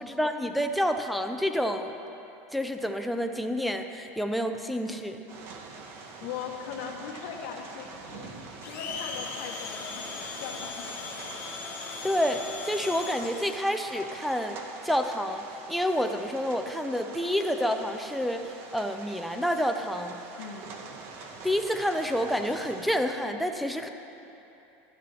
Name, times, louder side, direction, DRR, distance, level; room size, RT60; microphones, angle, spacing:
voice 1, 0.0-1.9 2.5-5.3 12.0-20.2 21.4-23.9, equal, ahead, 5 dB, 0.4 m, -29 dB
sound 1, 5.3-23.0, right 4 dB, 40° right, 0.9 m, -45 dB
voice 2, 6.2-10.1 10.4-10.9 20.4-20.7, left 7 dB, 60° left, 1 dB, 1.1 m, -39 dB
Domestic sounds home sounds, 8.6-13.7, left 5 dB, 35° left, 1.3 m, -38 dB
12.5 x 9.4 x 4.1 m, 2.9 s
supercardioid pair, 160°, 6 cm